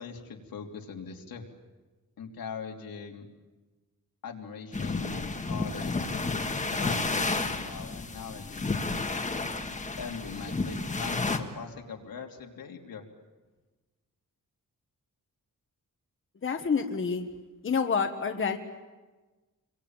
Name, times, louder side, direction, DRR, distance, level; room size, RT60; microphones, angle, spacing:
voice 1, 0.0-1.4 2.2-3.3 4.2-8.8 9.6-13.1, left 6 dB, 90° left, 1 dB, 3.2 m, -41 dB
sound 1, 4.7-11.4, left 3 dB, 20° left, 1.7 m, -31 dB
voice 2, 16.4-17.3 17.6-18.6, left 5 dB, 35° left, 5 dB, 1.5 m, -28 dB
28.0 x 23.5 x 9.0 m, 1.2 s
wide cardioid pair, 175°, 34 cm